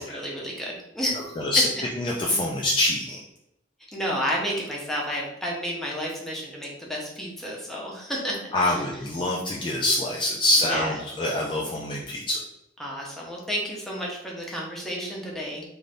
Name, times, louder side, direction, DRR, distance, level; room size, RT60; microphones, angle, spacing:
voice 1, 0.0-1.2 3.9-8.5 10.7-10.9 12.8-15.6, equal, ahead, -4 dB, 0.7 m, -31 dB
voice 2, 1.1-3.2 8.5-12.4, left 1 dB, 25° left, -2 dB, 0.3 m, -25 dB
2.5 x 2.5 x 3.3 m, 0.81 s
head